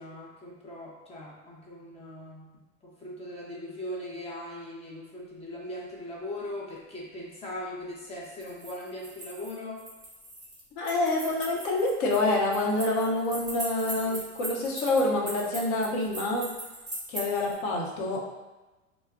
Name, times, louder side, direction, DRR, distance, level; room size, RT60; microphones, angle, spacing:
voice 1, 0.0-2.5 2.8-9.8 14.0-14.2, left 1 dB, 15° left, -5 dB, 0.6 m, -40 dB
sound 1, 8.2-17.5, right 1 dB, 10° right, 1.0 m, -40 dB
voice 2, 10.8-16.5 17.1-18.3, left 2 dB, 55° left, -1 dB, 0.8 m, -27 dB
2.2 x 2.0 x 3.5 m, 1.1 s
hypercardioid pair, 110°, 40 cm